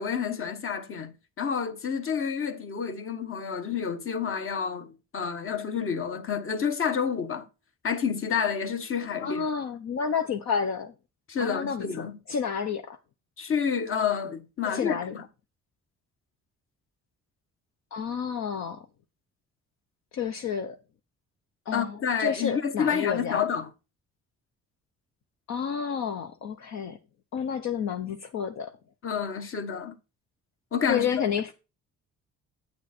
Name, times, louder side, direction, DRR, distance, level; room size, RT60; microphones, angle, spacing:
voice 1, 0.0-7.5 7.8-9.4 11.3-12.1 13.4-15.2 21.7-23.7 29.0-29.9 30.7-31.2, left 7 dB, 45° left, 1.4 m, -29 dB
voice 2, 9.2-10.9 11.4-13.0 14.6-15.2 17.9-18.8 20.1-20.8 21.7-23.4 25.5-27.0 27.3-28.7 30.9-31.5, left 6 dB, 65° left, 0.9 m, -30 dB
8.8 x 6.7 x 4.3 m
cardioid pair, 90°, 30 cm